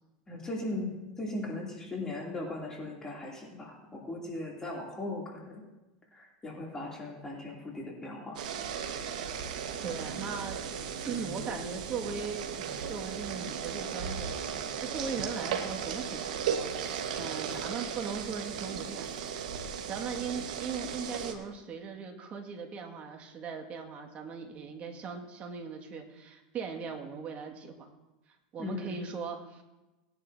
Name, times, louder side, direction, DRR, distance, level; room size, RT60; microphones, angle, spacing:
voice 1, 0.3-0.9 1.2-5.6 6.1-8.4 28.6-29.0, left 2 dB, 15° left, -3 dB, 2.9 m, -38 dB
sound 1, 8.4-21.3, right 7 dB, 85° right, 1.4 m, -36 dB
voice 2, 9.8-10.6 11.0-14.4 14.8-19.1 19.9-27.7 28.5-29.6, right 5 dB, 35° right, 2 dB, 2.0 m, -39 dB
19.0 x 10.5 x 2.8 m, 1.1 s
supercardioid pair, 120°, 4 cm